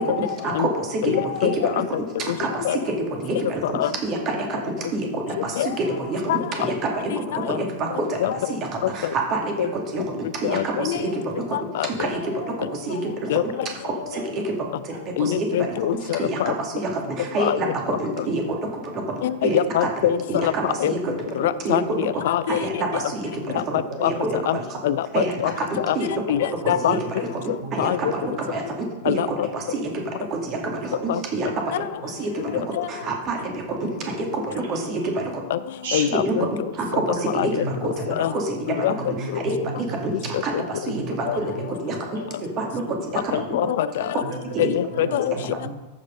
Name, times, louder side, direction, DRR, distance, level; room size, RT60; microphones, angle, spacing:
voice 1, 0.0-1.8 2.2-11.6 11.8-13.3 13.8-14.5 14.8-18.7 19.4-19.9 20.3-22.2 22.5-23.5 24.0-24.8 25.1-26.2 26.6-27.0 27.4-30.0 30.3-31.5 32.0-35.4 36.1-36.3 36.7-40.1 40.4-43.0 43.2-43.3 44.5-44.6, right 2 dB, 35° right, 1 dB, 2.3 m, -28 dB
voice 2, 1.0-1.8 2.6-2.8 3.8-3.9 5.6-5.7 6.3-6.4 7.5-7.6 8.2-8.3 9.6-9.7 10.4-11.0 11.5-12.1 13.3-13.4 15.2-16.5 17.4-17.6 19.2-20.9 21.4-22.6 24.0-24.1 24.5-24.6 24.8-25.5 25.9-26.0 26.3-27.0 27.8-28.0 29.1-29.5 31.1-31.2 32.8-32.9 35.5-35.6 35.9-36.5 37.3-37.6 38.1-38.3 38.8-38.9 41.3-41.4 43.3-44.2 44.6-45.3, left 11 dB, 55° left, 15 dB, 0.4 m, -23 dB
voice 3, 23.9-24.9 25.6-25.8 26.6-28.6 30.6-31.2 32.0-32.1 33.4-33.7 34.0-34.1 34.5-34.6 35.8-36.1 36.9-37.0 37.6-38.2 38.9-40.3 40.9-41.8 42.1-42.3 44.2-45.7, right 3 dB, 60° right, 0 dB, 2.6 m, -36 dB
14.0 x 5.1 x 5.2 m, 1.1 s
figure-of-eight pair, 90°, 0 cm